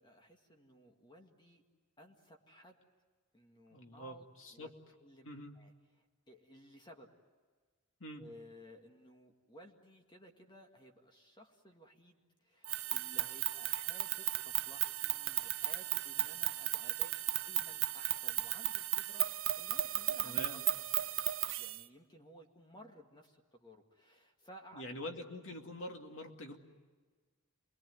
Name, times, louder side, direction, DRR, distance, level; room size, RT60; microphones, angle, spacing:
voice 1, 0.0-1.6 2.0-2.8 3.3-7.1 8.2-17.2 17.5-19.2 19.6-20.6 21.6-24.8, equal, 20° left, 3 dB, 2.0 m, -58 dB
voice 2, 3.7-4.7 5.2-5.6 8.0-8.3 20.2-20.6 24.7-26.6, left 1 dB, 60° left, 3 dB, 2.5 m, -45 dB
sound 1, 12.6-21.8, right 14 dB, 60° right, 0.8 m, -35 dB
29.0 x 21.5 x 9.4 m, 1.4 s
head